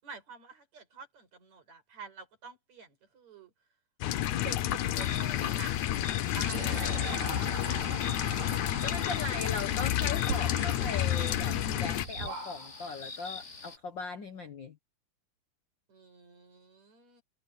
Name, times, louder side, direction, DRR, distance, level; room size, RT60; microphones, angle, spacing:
voice 1, 0.0-3.5 4.4-8.4 15.9-17.2, right 5 dB, 60° right, 6.7 m, -48 dB
sound 1, 4.0-12.1, left 13 dB, 75° left, 2.2 m, -30 dB
sound 2, 5.0-13.8, left 5 dB, 30° left, 4.3 m, -45 dB
Whispering, 6.5-13.0, right 5 dB, 85° right, 5.2 m, -41 dB
voice 2, 8.8-14.8, left 4 dB, 50° left, 1.4 m, -39 dB
omnidirectional pair, 3.6 m